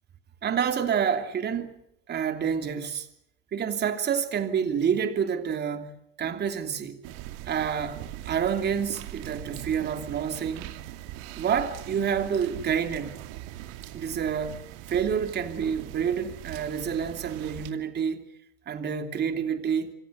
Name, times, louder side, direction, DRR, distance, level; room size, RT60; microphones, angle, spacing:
voice 1, 0.4-1.8 2.1-3.1 3.5-5.9 6.2-7.0 7.5-10.7 11.3-13.2 13.9-14.6 14.9-18.3 18.7-19.9, right 7 dB, 25° right, 3.0 m, -28 dB
sound 1, 7.0-17.7, right 14 dB, 60° right, 2.7 m, -41 dB
27.5 x 24.5 x 6.6 m
supercardioid pair, 130°, 36 cm